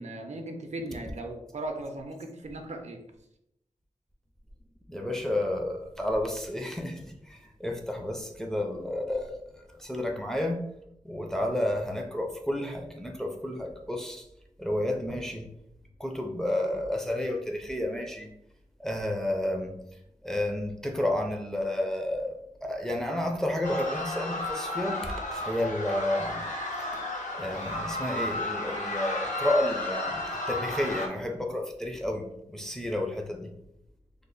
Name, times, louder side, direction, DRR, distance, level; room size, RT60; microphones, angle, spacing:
voice 1, 0.0-3.0, right 1 dB, 60° right, 4 dB, 0.5 m, -37 dB
voice 2, 4.9-10.6 11.0-14.2 14.6-15.5 16.0-18.3 18.8-19.8 20.2-26.4 26.8-26.9 27.3-33.5, left 1 dB, 5° left, 2 dB, 0.4 m, -31 dB
sound 1, 23.6-31.1, left 1 dB, 75° left, 0.7 m, -33 dB
3.2 x 2.1 x 3.8 m, 0.78 s
wide cardioid pair, 90°, 13 cm